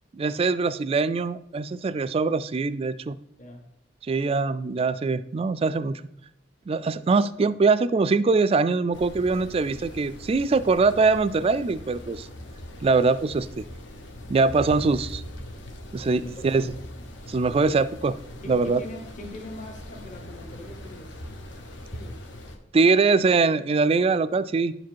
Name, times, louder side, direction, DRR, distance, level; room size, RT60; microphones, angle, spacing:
voice 1, 0.1-3.2 4.0-6.0 6.7-12.3 12.8-13.6 14.3-15.2 15.9-16.7 17.3-18.1 18.5-18.8 22.7-24.7, right 4 dB, 30° right, 14 dB, 0.3 m, -22 dB
sound 1, 8.9-22.6, left 1 dB, 65° left, 1.2 m, -41 dB
voice 2, 16.1-16.8 17.6-17.7 18.4-21.2 21.9-22.2, left 1 dB, 40° left, 1 dB, 1.3 m, -41 dB
11.0 x 4.8 x 4.5 m, 0.76 s
head